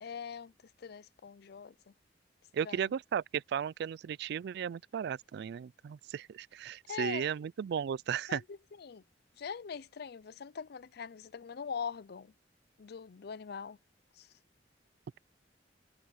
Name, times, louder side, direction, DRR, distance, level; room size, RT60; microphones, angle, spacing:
voice 1, 0.0-1.9 2.6-2.9 6.9-7.3 8.3-9.0 9.4-12.3 12.8-13.8 14.1-14.3, left 6 dB, 60° left, 0.5 m, -42 dB
voice 2, 2.5-8.4, right 8 dB, 65° right, 0.3 m, -35 dB
head